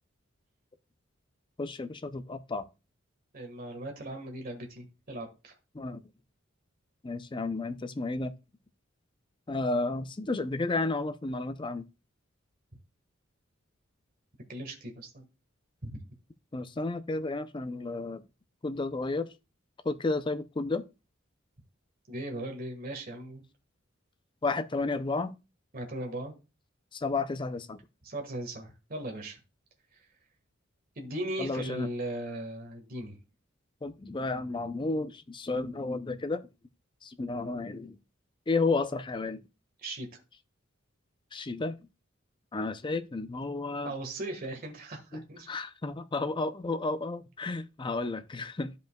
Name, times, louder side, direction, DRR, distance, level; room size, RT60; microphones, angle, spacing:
voice 1, 1.6-2.7 5.7-6.0 7.0-8.3 9.5-11.8 16.5-18.2 18.6-19.3 19.8-20.8 24.4-25.3 26.9-27.8 31.4-31.9 33.8-36.4 37.0-38.0 38.5-39.4 41.3-41.8 42.5-43.9 45.1-48.7, left 3 dB, 25° left, 0.5 m, -32 dB
voice 2, 3.3-5.5 14.5-15.2 15.8-16.0 22.1-23.4 25.7-26.3 28.0-29.4 30.9-33.2 39.8-40.1 43.8-45.5, right 1 dB, 45° right, 1.6 m, -38 dB
12.5 x 5.2 x 2.3 m
head